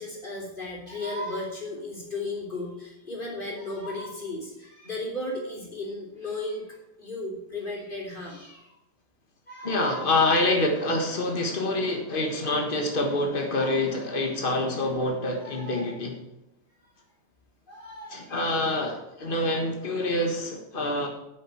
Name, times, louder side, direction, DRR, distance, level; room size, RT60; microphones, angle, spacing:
voice 1, 0.0-8.8 9.5-10.0 15.4-16.0 17.7-18.3, left 2 dB, 15° left, -1 dB, 3.3 m, -35 dB
voice 2, 9.6-16.2 18.1-21.1, left 2 dB, 85° left, 2 dB, 0.4 m, -26 dB
9.4 x 6.8 x 8.4 m, 0.90 s
omnidirectional pair, 3.5 m